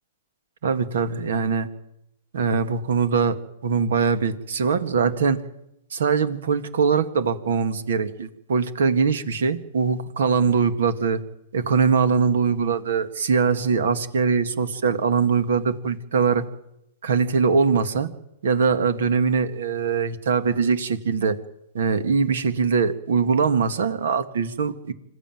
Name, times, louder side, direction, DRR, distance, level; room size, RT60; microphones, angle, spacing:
voice 1, 0.6-1.7 2.3-3.4 3.6-5.4 5.9-11.2 11.5-16.4 17.0-18.1 18.4-21.4 21.7-24.9, right 5 dB, 75° right, 11 dB, 1.9 m, -22 dB
26.0 x 13.5 x 9.2 m, 0.85 s
hypercardioid pair, 135°, 0 cm